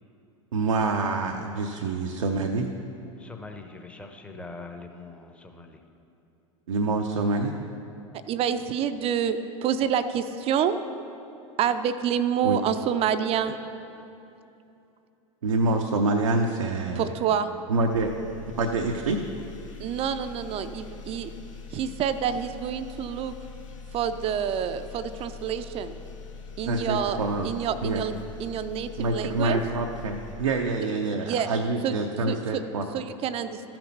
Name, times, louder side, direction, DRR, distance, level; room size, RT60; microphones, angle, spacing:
voice 1, 0.5-2.7 6.7-7.5 12.4-12.6 15.4-17.1 17.7-18.1 18.6-19.2 26.6-27.5 27.8-28.0 29.0-32.8, right 3 dB, 80° right, 2 dB, 0.6 m, -26 dB
voice 2, 3.2-5.8, left 3 dB, 5° left, 4 dB, 0.9 m, -43 dB
voice 3, 8.3-10.8 11.6-13.5 17.0-17.6 19.8-21.3 21.7-23.3 23.9-25.9 26.6-29.6 31.2-31.5 31.8-31.9 32.3-32.6 32.9-33.6, right 8 dB, 35° right, 10 dB, 0.5 m, -27 dB
sound 1, 17.9-31.3, left 5 dB, 75° left, 1.2 m, -43 dB
13.5 x 6.0 x 5.4 m, 2.8 s
figure-of-eight pair, 85°, 17 cm